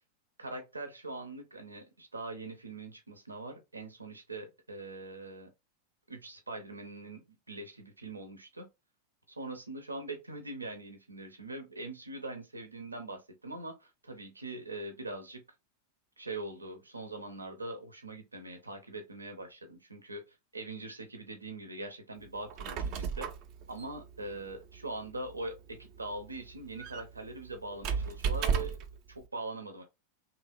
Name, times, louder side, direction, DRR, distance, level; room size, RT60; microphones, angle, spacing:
voice 1, 0.4-5.5 6.1-8.7 9.3-15.4 16.2-23.3 23.7-28.8 29.1-29.8, right 2 dB, 80° right, 0.7 m, -42 dB
Squeak, 22.3-29.0, right 6 dB, 40° right, 0.5 m, -36 dB
3.2 x 2.7 x 2.4 m
figure-of-eight pair, 90°, 0 cm